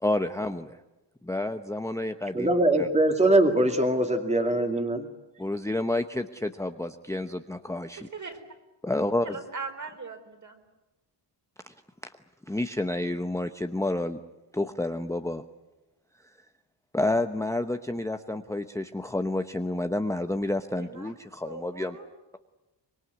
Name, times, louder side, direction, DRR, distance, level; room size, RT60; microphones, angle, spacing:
voice 1, 0.0-0.8 1.2-2.5 2.8-2.9 5.4-8.1 8.8-9.4 12.0-12.1 12.5-14.2 14.5-15.4 16.9-22.0, left 1 dB, 5° left, 7 dB, 0.9 m, -29 dB
voice 2, 2.3-5.1, right 1 dB, 15° right, 5 dB, 2.4 m, -22 dB
voice 3, 8.0-8.4 9.2-10.6 20.7-21.1 21.4-22.1, right 4 dB, 40° right, 4 dB, 4.7 m, -40 dB
25.0 x 23.0 x 9.5 m, 1.0 s
wide cardioid pair, 140°, 43 cm